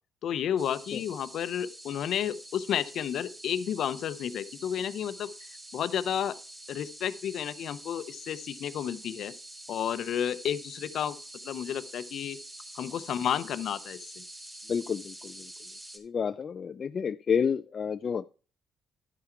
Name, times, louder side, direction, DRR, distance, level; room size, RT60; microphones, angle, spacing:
voice 1, 0.2-5.3 5.7-6.4 6.7-9.3 9.7-11.2 11.4-12.4 12.7-14.2, left 9 dB, 70° left, 0.7 m, -31 dB
sound 1, 0.6-16.0, right 1 dB, 20° right, 2.2 m, -47 dB
voice 2, 14.7-15.5 16.0-18.3, left 6 dB, 45° left, 0.4 m, -30 dB
11.5 x 5.8 x 4.5 m
cardioid pair, 90°, 0 cm